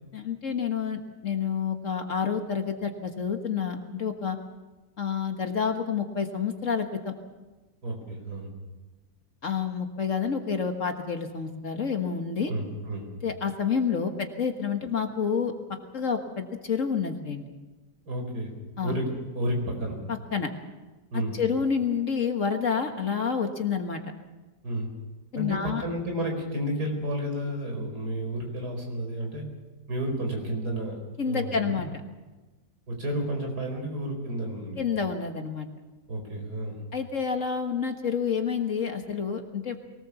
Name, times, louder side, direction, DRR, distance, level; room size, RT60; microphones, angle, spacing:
voice 1, 0.1-4.4 5.0-7.1 9.4-12.5 13.2-15.5 15.9-17.4 18.8-18.9 20.3-20.5 21.4-24.0 25.3-25.8 31.2-31.9 34.8-35.7 36.9-39.8, left 6 dB, 50° left, 5 dB, 1.8 m, -28 dB
voice 2, 7.8-8.5 12.4-13.1 18.1-18.5 18.8-19.1 19.3-20.0 21.1-21.4 24.6-24.9 25.4-29.5 29.9-31.8 32.9-34.9 36.1-36.8, right 1 dB, 65° right, 2 dB, 5.1 m, -31 dB
23.0 x 19.0 x 7.1 m, 1.2 s
omnidirectional pair, 1.8 m